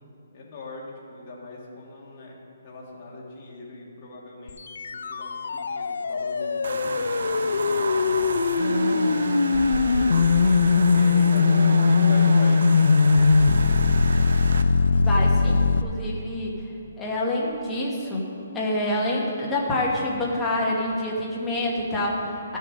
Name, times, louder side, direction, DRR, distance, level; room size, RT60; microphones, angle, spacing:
voice 1, 0.0-2.4 2.6-7.9 8.5-9.3 9.9-13.4, left 3 dB, 30° left, -4 dB, 1.7 m, -42 dB
sound 1, 4.5-15.8, left 4 dB, 75° left, 0.3 m, -20 dB
sound 2, 6.6-14.6, right 4 dB, 75° right, 0.6 m, -30 dB
voice 2, 14.9-16.6 17.0-18.3 18.5-22.6, left 1 dB, 10° left, -5 dB, 1.2 m, -27 dB
13.5 x 6.6 x 5.1 m, 2.6 s
hypercardioid pair, 170°, 0 cm